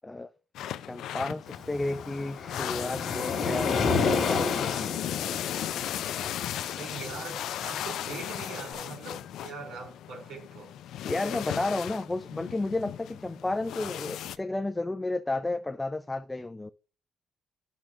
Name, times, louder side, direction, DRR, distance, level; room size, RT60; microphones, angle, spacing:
sound 1, 0.5-14.4, left 11 dB, 80° left, 0.4 m, -36 dB
voice 1, 0.8-4.9 11.0-16.7, left 2 dB, 15° left, 0.4 m, -32 dB
Waves surf, 1.5-8.6, left 5 dB, 65° left, 1.5 m, -31 dB
voice 2, 6.7-10.8, right 4 dB, 85° right, 3.1 m, -42 dB
10.5 x 6.1 x 2.5 m
cardioid pair, 90°, 0 cm